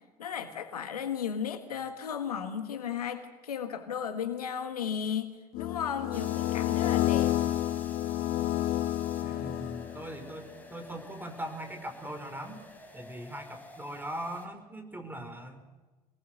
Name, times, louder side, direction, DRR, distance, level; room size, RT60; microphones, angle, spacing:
voice 1, 0.2-7.4, left 8 dB, 80° left, 9 dB, 1.5 m, -35 dB
sound 1, 5.5-10.2, left 13 dB, 50° left, 0.7 m, -29 dB
sound 2, 6.1-14.5, left 1 dB, 10° left, 5.1 m, -50 dB
voice 2, 9.2-12.6 12.9-15.6, right 1 dB, 10° right, 6 dB, 5.0 m, -40 dB
25.5 x 19.5 x 6.6 m, 1.2 s
figure-of-eight pair, 60°, 19 cm